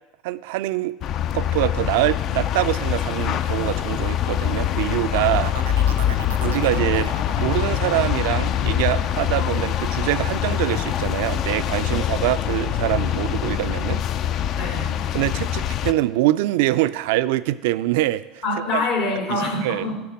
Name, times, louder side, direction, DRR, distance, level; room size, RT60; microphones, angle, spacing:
voice 1, 0.2-1.0 1.3-5.5 6.4-14.0 15.1-18.4 18.7-18.8 19.3-19.9, right 16 dB, 70° right, 15 dB, 0.3 m, -24 dB
sound 1, 1.0-15.9, left 10 dB, 50° left, 0.4 m, -24 dB
sound 2, 5.1-10.7 11.1-11.6, right 8 dB, 85° right, 0.7 m, -38 dB
voice 2, 14.5-15.0 18.4-19.9, left 2 dB, 65° left, -1 dB, 2.9 m, -25 dB
10.5 x 3.9 x 7.4 m, 1.1 s
hypercardioid pair, 75°, 0 cm